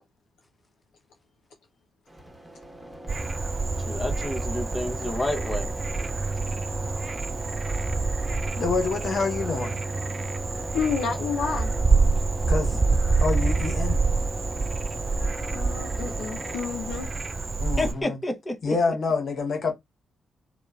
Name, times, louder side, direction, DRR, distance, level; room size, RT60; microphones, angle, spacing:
sound 1, 2.1-18.0, right 1 dB, 15° right, 1.0 m, -39 dB
Frog, 3.1-17.9, right 4 dB, 35° right, 0.3 m, -27 dB
voice 1, 3.8-5.7 17.8-18.8, left 1 dB, 25° left, 0.7 m, -30 dB
voice 2, 8.6-9.8 12.5-14.0 17.6-18.2 18.6-19.7, left 4 dB, 60° left, 0.8 m, -27 dB
voice 3, 10.7-11.7 15.5-17.1, left 6 dB, 75° left, 0.4 m, -29 dB
2.9 x 2.0 x 2.3 m
hypercardioid pair, 40°, 0 cm